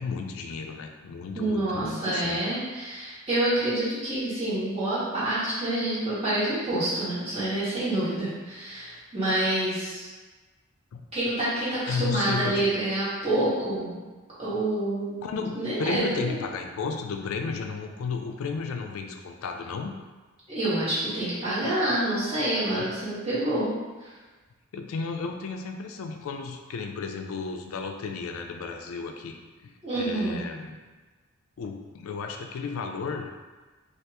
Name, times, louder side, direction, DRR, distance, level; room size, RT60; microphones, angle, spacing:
voice 1, 0.0-2.4 10.9-11.1 11.9-12.7 15.2-19.9 24.7-30.8 31.6-33.3, left 5 dB, 80° left, 4 dB, 0.3 m, -33 dB
voice 2, 1.3-10.1 11.1-13.9 14.4-15.1 15.5-16.4 20.5-24.1 29.8-30.4, right 1 dB, 30° right, -12 dB, 1.4 m, -27 dB
2.9 x 2.4 x 3.3 m, 1.3 s
head